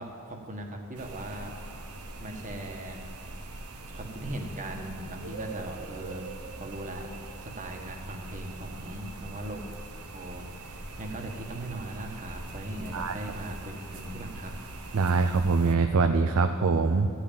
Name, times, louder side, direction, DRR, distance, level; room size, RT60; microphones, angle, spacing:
voice 1, 0.0-1.5 2.2-3.0 3.9-6.3 6.6-7.1 7.4-9.6 10.1-14.5, right 1 dB, 35° right, 2 dB, 1.3 m, -39 dB
sound 1, 0.9-15.7, right 2 dB, 85° right, 1.1 m, -42 dB
voice 2, 14.9-17.1, right 4 dB, 70° right, 6 dB, 0.5 m, -23 dB
14.5 x 5.8 x 8.6 m, 2.5 s
head